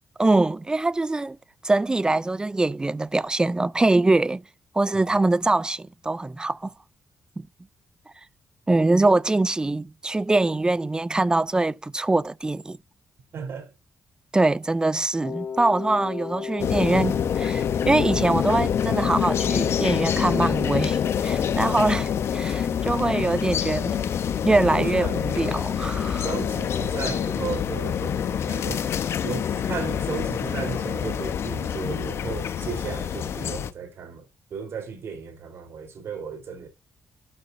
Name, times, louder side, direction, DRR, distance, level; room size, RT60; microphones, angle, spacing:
voice 1, 0.2-1.4 1.6-4.4 4.7-6.7 7.4-7.5 8.7-12.8 14.3-24.0 24.4-26.2, right 2 dB, 15° right, 0.4 m, -23 dB
voice 2, 13.3-13.7 24.8-25.4 26.2-28.9 29.2-34.3 34.5-36.7, right 6 dB, 65° right, 3.8 m, -35 dB
Wind instrument woodwind instrument, 15.2-20.9, left 6 dB, 50° left, 1.5 m, -34 dB
sound 1, 16.6-33.7, left 8 dB, 65° left, 0.9 m, -26 dB
12.0 x 6.7 x 2.7 m
cardioid pair, 85°, 5 cm